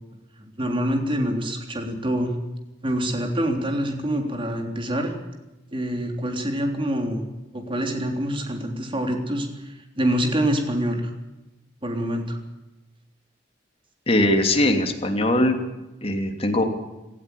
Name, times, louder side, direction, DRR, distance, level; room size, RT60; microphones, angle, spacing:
voice 1, 0.4-2.3 2.8-5.1 5.7-7.3 7.5-11.1 11.8-12.4, equal, 30° right, 3 dB, 3.5 m, -26 dB
voice 2, 14.1-15.6 16.0-16.6, left 1 dB, 35° left, 4 dB, 2.9 m, -20 dB
17.5 x 15.0 x 10.0 m, 1.0 s
head